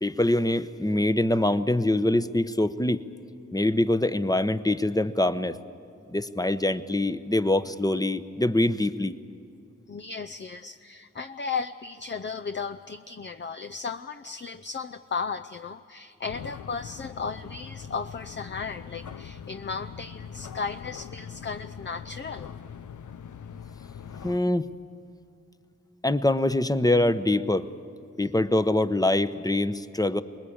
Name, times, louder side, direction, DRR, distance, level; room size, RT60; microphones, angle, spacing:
voice 1, 0.0-3.0 3.5-5.6 6.1-9.1 24.2-24.7 26.0-27.7 28.2-30.2, left 1 dB, 10° left, 12 dB, 1.0 m, -24 dB
voice 2, 9.9-22.5, left 5 dB, 40° left, 9 dB, 0.7 m, -35 dB
sound 1, 16.2-24.4, left 7 dB, 80° left, 0.7 m, -42 dB
24.0 x 20.5 x 8.7 m, 2.6 s
cardioid pair, 50°, 30 cm